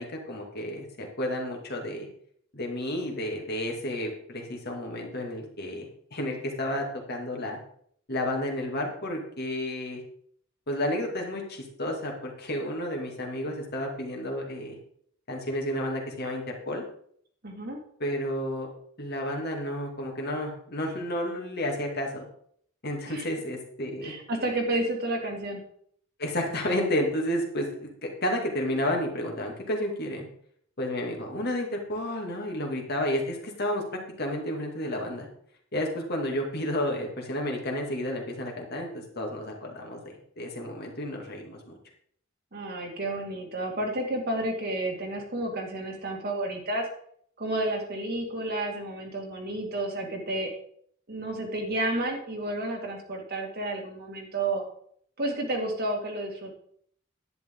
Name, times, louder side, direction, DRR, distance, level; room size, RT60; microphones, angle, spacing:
voice 1, 0.0-2.1 2.5-7.6 8.1-10.0 10.7-14.8 15.3-16.8 18.0-18.7 19.0-22.3 22.8-24.1 26.2-30.3 30.8-33.8 34.2-35.3 35.7-41.7, left 1 dB, 50° left, 1 dB, 2.2 m, -31 dB
voice 2, 17.4-17.8 23.1-23.2 24.0-25.6 42.5-46.9 47.4-50.5 51.1-54.6 55.2-56.5, right 1 dB, 50° right, 1 dB, 2.0 m, -31 dB
10.5 x 9.1 x 3.7 m, 0.64 s
head